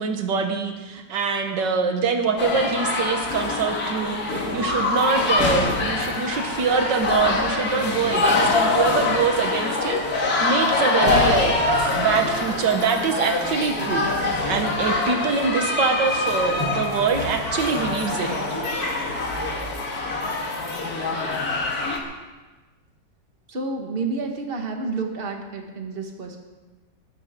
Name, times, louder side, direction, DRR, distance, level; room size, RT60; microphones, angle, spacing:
voice 1, 0.0-18.5, right 5 dB, 85° right, 5 dB, 1.9 m, -24 dB
sound 1, 2.4-22.0, left 2 dB, 60° left, 2.2 m, -24 dB
voice 2, 23.5-26.4, right 3 dB, 35° right, 2 dB, 1.7 m, -29 dB
20.0 x 12.5 x 3.7 m, 1.2 s
omnidirectional pair, 1.8 m